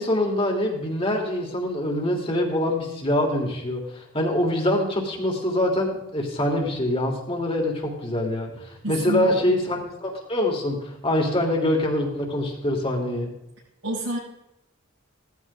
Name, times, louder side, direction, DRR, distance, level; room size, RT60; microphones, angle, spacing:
voice 1, 0.0-13.3, left 1 dB, 25° left, 0 dB, 3.2 m, -24 dB
voice 2, 8.8-9.5 13.8-14.2, right 1 dB, 90° right, -8 dB, 7.5 m, -29 dB
18.0 x 14.5 x 3.8 m, 0.86 s
head